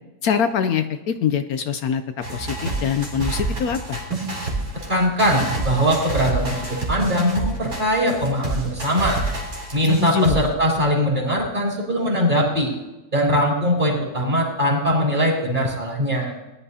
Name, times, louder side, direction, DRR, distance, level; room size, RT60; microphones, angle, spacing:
voice 1, 0.2-2.0 2.3-4.0 10.0-10.4, left 7 dB, 70° left, 8 dB, 1.1 m, -23 dB
sound 1, 2.2-10.5, right 2 dB, 65° right, 3.3 m, -28 dB
voice 2, 4.9-9.2 9.7-12.7 13.1-16.3, equal, 30° right, -3 dB, 4.2 m, -21 dB
20.0 x 11.0 x 2.8 m, 1.0 s
omnidirectional pair, 1.7 m